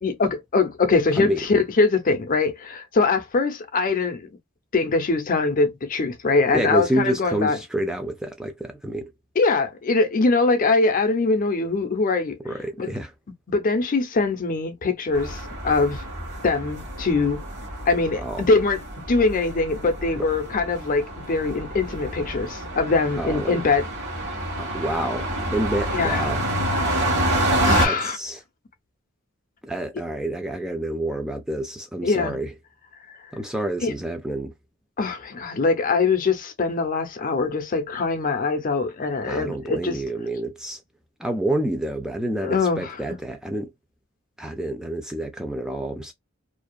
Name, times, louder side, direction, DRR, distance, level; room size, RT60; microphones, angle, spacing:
voice 1, 0.0-4.3 4.7-7.6 9.4-12.4 12.8-12.9 13.5-16.0 16.4-17.4 17.9-18.8 19.1-23.9 25.9-26.2 26.9-27.3 27.6-28.2 32.0-32.4 33.8-33.9 35.0-40.0 42.4-43.2, left 3 dB, 40° left, 0.6 m, -22 dB
voice 2, 6.5-9.1 12.4-13.1 18.2-18.4 20.2-20.3 23.2-23.6 24.6-26.4 27.8-28.4 29.6-32.5 33.3-34.5 39.3-40.8 41.2-43.7 44.4-46.1, right 1 dB, 5° right, 0.3 m, -28 dB
sound 1, 15.1-27.9, right 1 dB, 55° right, 1.2 m, -28 dB
2.6 x 2.3 x 2.2 m
head